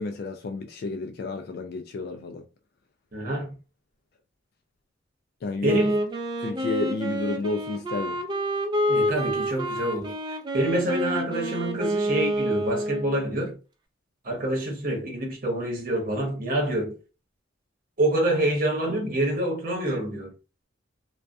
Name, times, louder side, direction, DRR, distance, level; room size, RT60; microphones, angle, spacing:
voice 1, 0.0-2.4 5.4-5.8 6.4-8.2, left 2 dB, 55° left, 0.3 m, -31 dB
voice 2, 3.1-3.5 5.6-6.0 8.9-10.2 10.5-13.6 14.2-17.0 18.0-20.3, right 1 dB, 45° right, 0.9 m, -26 dB
Wind instrument woodwind instrument, 5.6-13.3, equal, 25° right, 0.4 m, -28 dB
2.5 x 2.2 x 2.3 m
head